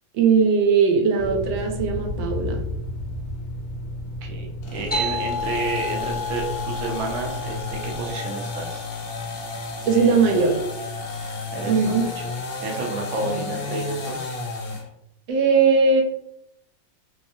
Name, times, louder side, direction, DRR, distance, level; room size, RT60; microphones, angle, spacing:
voice 1, 0.1-2.6 9.8-10.6 11.7-12.1 13.2-13.6 15.3-16.0, right 5 dB, 75° right, 2 dB, 1.4 m, -19 dB
sound 1, 1.2-8.1, left 1 dB, 85° left, 1.5 m, -33 dB
voice 2, 4.2-8.9 9.9-10.5 11.2-12.4 12.6-14.3, right 3 dB, 55° right, 0 dB, 0.8 m, -31 dB
sound 2, 4.6-14.9, left 3 dB, 65° left, 1.0 m, -33 dB
sound 3, 4.9-9.9, left 3 dB, 10° left, 0.4 m, -32 dB
3.5 x 3.1 x 2.7 m, 0.76 s
omnidirectional pair, 2.1 m